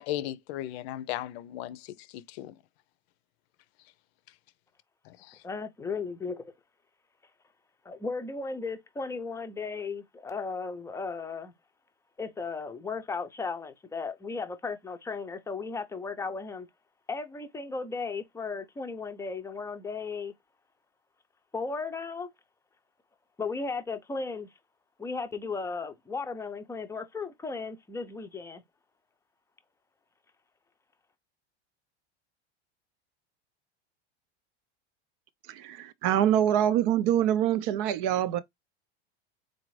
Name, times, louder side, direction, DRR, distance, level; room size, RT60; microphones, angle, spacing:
voice 1, 0.0-2.5 5.1-5.4, left 13 dB, 65° left, 0.6 m, -36 dB
voice 2, 5.4-6.5 7.8-11.5 12.2-16.7 17.1-20.3 21.5-22.3 23.4-24.5 25.0-28.6, left 4 dB, 10° left, 0.5 m, -35 dB
voice 3, 35.5-38.4, right 11 dB, 55° right, 0.6 m, -25 dB
4.0 x 2.5 x 3.1 m
supercardioid pair, 125°, 33 cm